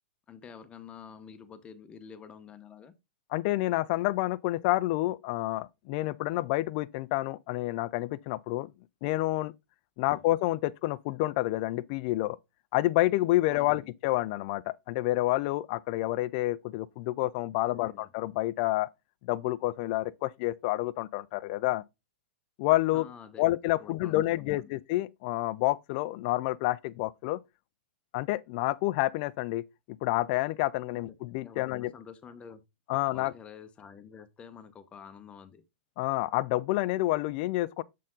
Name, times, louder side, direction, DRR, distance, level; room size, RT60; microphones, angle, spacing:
voice 1, 0.3-2.9 10.0-10.2 13.5-13.9 17.6-18.1 22.9-24.8 30.9-31.2 31.4-32.6 33.1-35.6, left 7 dB, 20° left, 0.8 m, -48 dB
voice 2, 3.3-8.7 9.0-9.5 10.0-12.4 12.7-18.9 19.2-21.8 22.6-23.1 23.4-27.4 28.1-31.9 32.9-33.3 36.0-37.8, left 17 dB, 45° left, 0.4 m, -29 dB
7.3 x 4.3 x 3.8 m
hypercardioid pair, 135°, 6 cm